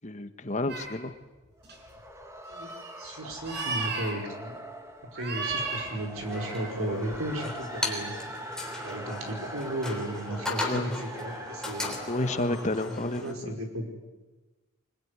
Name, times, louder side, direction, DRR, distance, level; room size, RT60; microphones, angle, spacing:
voice 1, 0.0-1.1 10.6-10.9 12.1-13.6, left 2 dB, 35° left, 9 dB, 1.4 m, -31 dB
sound 1, 0.7-0.8 1.6-2.0 2.5-3.0 3.3-4.1 5.1-5.9 6.2-6.7 7.1-7.2, right 4 dB, 50° right, 5.9 m, -34 dB
sound 2, 1.6-12.7, right 1 dB, 15° right, 1.7 m, -43 dB
voice 2, 3.0-4.5 5.1-8.2 8.8-12.0 12.6-13.9, right 1 dB, 85° right, 3 dB, 5.1 m, -35 dB
sound 3, 6.2-13.3, left 2 dB, 5° left, 3.4 m, -37 dB
24.5 x 21.5 x 9.7 m, 1.2 s
head